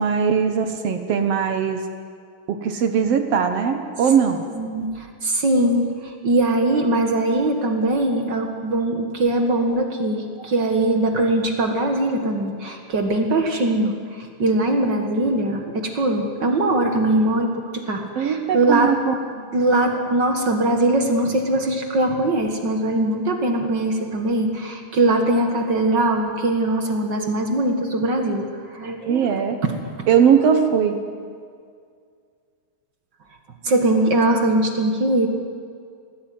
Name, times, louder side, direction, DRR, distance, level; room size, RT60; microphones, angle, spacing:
voice 1, 0.0-1.8 2.5-4.4 18.1-19.5 29.1-29.6 30.1-31.0, right 7 dB, 80° right, 7 dB, 1.4 m, -20 dB
voice 2, 4.5-18.9 19.5-29.7 33.6-35.3, right 2 dB, 50° right, 4 dB, 1.3 m, -21 dB
25.0 x 18.5 x 9.4 m, 2.2 s
omnidirectional pair, 4.5 m